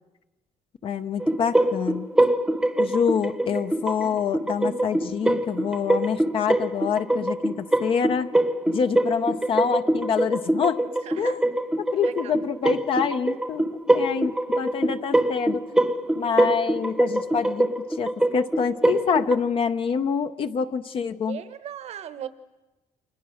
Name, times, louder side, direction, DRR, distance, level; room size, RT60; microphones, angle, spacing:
voice 1, 0.8-2.1 2.8-8.3 8.7-10.8 11.2-11.4 11.8-15.6 16.1-21.4, left 6 dB, 45° left, 9 dB, 0.8 m, -26 dB
sound 1, 1.2-19.3, right 1 dB, 5° right, 0.9 m, -24 dB
voice 2, 11.0-11.4 12.0-12.3 21.3-22.3, right 10 dB, 55° right, 12 dB, 1.1 m, -37 dB
30.0 x 25.5 x 6.4 m, 1.1 s
cardioid pair, 160°, 13 cm